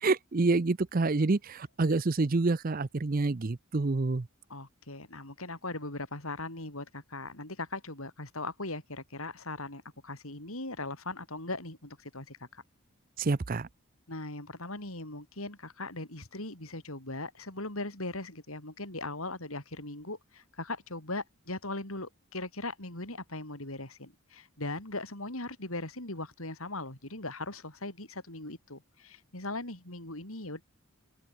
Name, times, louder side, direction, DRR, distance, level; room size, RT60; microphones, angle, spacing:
voice 1, 0.0-4.3 13.2-13.7, right 3 dB, 40° right, 0.6 m, -27 dB
voice 2, 4.5-12.6 14.1-30.6, left 2 dB, 70° left, 6.0 m, -39 dB
open air
head